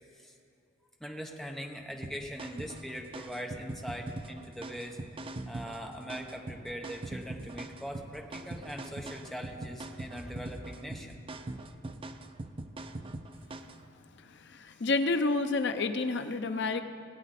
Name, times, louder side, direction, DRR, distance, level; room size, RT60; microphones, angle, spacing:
voice 1, 1.0-5.0 5.5-11.2 13.8-13.9, equal, ahead, 1 dB, 1.0 m, -41 dB
sound 1, 2.0-13.8, right 2 dB, 30° right, 0.5 m, -42 dB
voice 2, 14.4-16.8, left 3 dB, 60° left, 8 dB, 0.7 m, -29 dB
19.5 x 8.4 x 4.2 m, 2.6 s
head